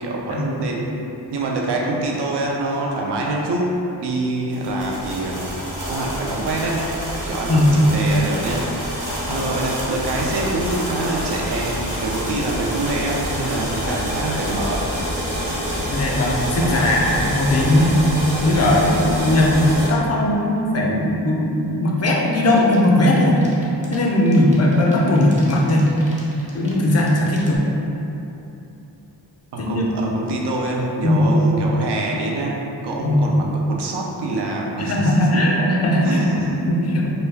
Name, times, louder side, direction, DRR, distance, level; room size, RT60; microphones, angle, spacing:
voice 1, 0.0-0.9 1.3-5.4 5.8-6.9 7.2-8.6 9.3-14.9 29.5-35.2 36.0-36.6, right 2 dB, 65° right, -1 dB, 0.5 m, -25 dB
sound 1, 4.5-19.9, equal, 85° right, 1.0 m, -27 dB
voice 2, 15.9-18.0 18.4-23.4 23.9-25.9 26.5-27.6 29.6-29.8 31.0-31.3 33.0-33.2 34.9-36.2 36.7-37.1, left 1 dB, 35° left, -3 dB, 0.4 m, -18 dB
sound 2, 22.6-27.6, right 1 dB, 15° right, 0.5 m, -41 dB
2.2 x 2.1 x 3.3 m, 2.9 s
wide cardioid pair, 60°, 43 cm